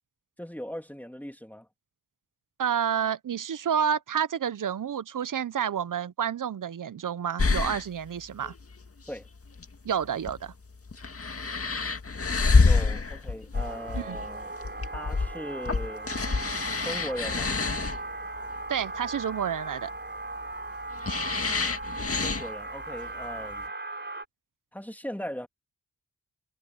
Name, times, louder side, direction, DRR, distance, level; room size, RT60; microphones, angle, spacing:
voice 1, 0.4-1.7 9.1-9.3 12.6-14.6 14.9-16.1 16.8-17.5 22.0-23.7 24.7-25.5, equal, 5° left, 3.3 m, -39 dB
voice 2, 2.6-8.5 9.8-10.5 13.9-14.2 18.7-19.9, right 8 dB, 65° right, 0.9 m, -29 dB
sound 1, 7.4-23.6, left 4 dB, 45° left, 2.0 m, -28 dB
sound 2, 13.5-24.2, right 2 dB, 30° right, 4.7 m, -38 dB
cardioid pair, 45°, 34 cm